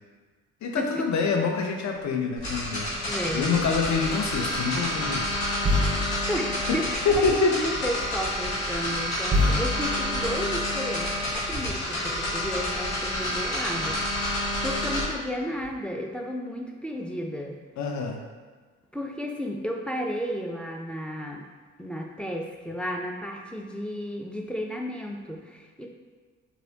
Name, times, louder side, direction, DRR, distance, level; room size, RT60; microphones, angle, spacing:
voice 1, 0.6-3.0 3.3-5.4 6.7-6.8 7.0-7.6 17.8-18.2, left 5 dB, 50° left, 2 dB, 0.6 m, -26 dB
sound 1, 1.9-2.1 3.9-4.1 5.6-7.3 8.4-8.5 9.3-11.0 12.6-12.7 13.0-13.5 14.3-14.8 15.5-15.7, left 1 dB, 15° right, 1.3 m, -29 dB
sound 2, 2.4-15.0, left 1 dB, 75° left, 1.2 m, -29 dB
voice 2, 3.1-3.5 6.3-14.0 14.6-17.6 18.9-21.5 21.8-25.9, equal, 5° left, 1 dB, 0.3 m, -33 dB
3.0 x 2.7 x 2.8 m, 1.5 s
hypercardioid pair, 50°, 37 cm